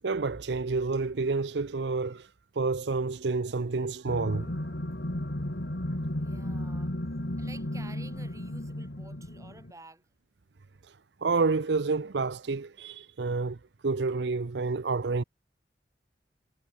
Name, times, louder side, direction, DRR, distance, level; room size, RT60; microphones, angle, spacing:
voice 1, 0.0-2.3 2.6-4.5 11.2-13.6 13.8-15.2, right 4 dB, 75° right, 0.7 m, -29 dB
sound 1, 4.1-9.7, left 1 dB, 65° left, 2.5 m, -34 dB
voice 2, 6.2-6.9 7.4-10.0, right 2 dB, 20° right, 6.2 m, -51 dB
head